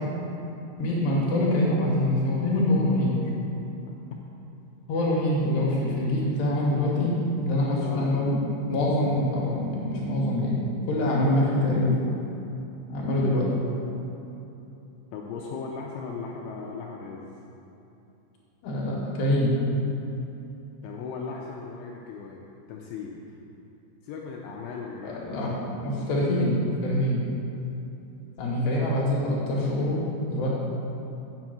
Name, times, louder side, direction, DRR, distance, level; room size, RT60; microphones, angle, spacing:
voice 1, 0.8-3.2 4.9-8.3 8.7-10.6 10.9-11.9 12.9-13.5 18.6-19.5 25.0-26.5 26.8-27.2 28.4-30.0 30.3-30.5, left 1 dB, 65° left, -4 dB, 3.1 m, -25 dB
voice 2, 7.8-8.3 13.2-13.5 15.1-17.3 20.8-23.2 24.0-25.5, left 5 dB, 80° left, -1 dB, 2.8 m, -38 dB
8.1 x 7.2 x 7.7 m, 2.9 s
omnidirectional pair, 6.0 m